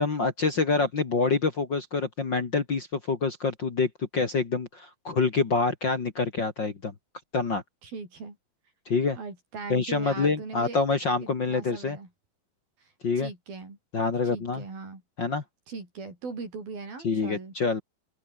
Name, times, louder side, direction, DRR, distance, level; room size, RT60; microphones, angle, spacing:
voice 1, 0.0-6.9 7.3-7.6 8.9-9.2 9.7-12.0 13.0-13.3 13.9-14.6 15.2-15.4 17.0-17.8, left 4 dB, 35° left, 2.2 m, -26 dB
voice 2, 7.8-8.4 9.1-10.8 11.2-12.1 12.8-13.8 14.3-15.0 15.7-17.5, right 4 dB, 80° right, 9.1 m, -39 dB
open air
omnidirectional pair, 4.2 m